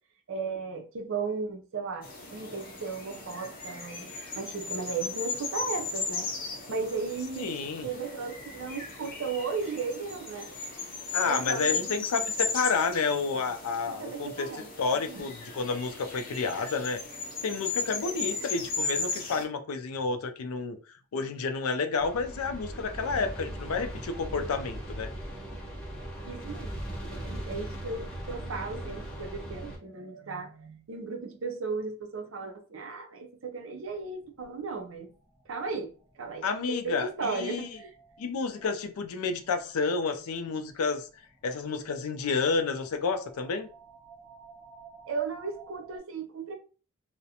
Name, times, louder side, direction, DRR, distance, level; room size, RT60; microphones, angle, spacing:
voice 1, 0.3-2.1 2.3-4.1 4.4-6.3 6.7-7.6 7.8-10.5 11.3-12.0 14.0-14.7 14.9-15.2 17.9-18.4 26.2-35.1 35.5-35.9 36.2-37.9 45.1-46.6, right 4 dB, 65° right, 0.5 m, -35 dB
sound 1, 2.0-19.4, left 4 dB, 40° left, 0.6 m, -36 dB
voice 2, 7.4-7.9 11.1-17.0 17.4-20.8 21.1-25.1 36.4-37.8 38.2-41.1 41.4-43.7, left 4 dB, 85° left, 0.4 m, -30 dB
sound 2, 22.0-29.8, right 1 dB, 5° left, 0.7 m, -39 dB
sound 3, 33.9-46.0, right 4 dB, 25° right, 0.9 m, -55 dB
2.4 x 2.1 x 2.7 m
head